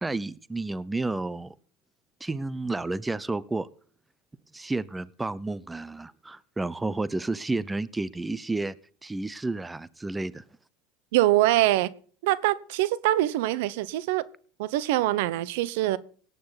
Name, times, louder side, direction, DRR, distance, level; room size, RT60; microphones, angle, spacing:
voice 1, 0.0-1.5 2.2-3.7 4.5-8.7 9.0-10.4, right 2 dB, 10° right, 0.7 m, -31 dB
voice 2, 11.1-11.9 12.2-14.2 14.6-16.0, right 16 dB, 75° right, 0.9 m, -24 dB
18.0 x 9.4 x 4.0 m
supercardioid pair, 115°, 0 cm